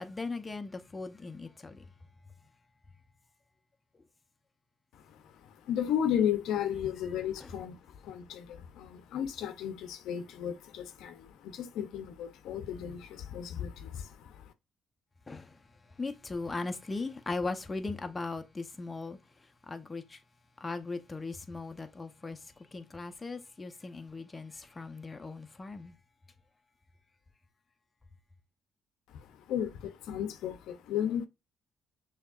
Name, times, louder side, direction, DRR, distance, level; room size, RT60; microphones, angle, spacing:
voice 1, 0.0-1.8 7.4-7.5 15.3-15.5 16.0-19.2 19.7-20.2 20.6-22.4 22.7-25.9, left 3 dB, 25° left, 0.7 m, -38 dB
voice 2, 4.9-14.5 29.2-31.3, left 9 dB, 85° left, 0.6 m, -34 dB
6.4 x 2.9 x 2.4 m
cardioid pair, 85°, 0 cm